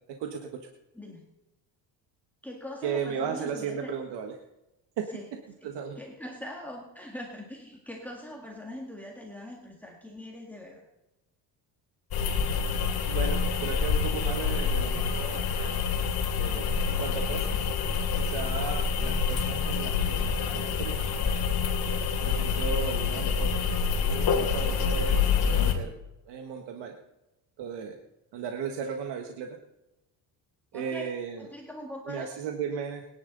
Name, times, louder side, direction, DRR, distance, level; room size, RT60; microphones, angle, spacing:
voice 1, 0.2-0.7 2.8-4.4 5.0-5.1 5.6-6.0 13.1-15.7 16.4-17.6 18.2-21.0 22.2-23.7 24.0-25.9 26.3-26.9 27.6-28.0 28.3-29.6 30.7-31.5 32.0-33.1, right 6 dB, 75° right, 4 dB, 1.6 m, -35 dB
voice 2, 2.4-3.9 5.1-5.3 5.6-5.7 6.0-10.9 30.7-32.4, left 1 dB, 5° left, -1 dB, 2.0 m, -42 dB
sound 1, 12.1-25.7, left 6 dB, 60° left, 2.9 m, -27 dB
22.5 x 10.5 x 4.0 m, 0.97 s
cardioid pair, 120°, 42 cm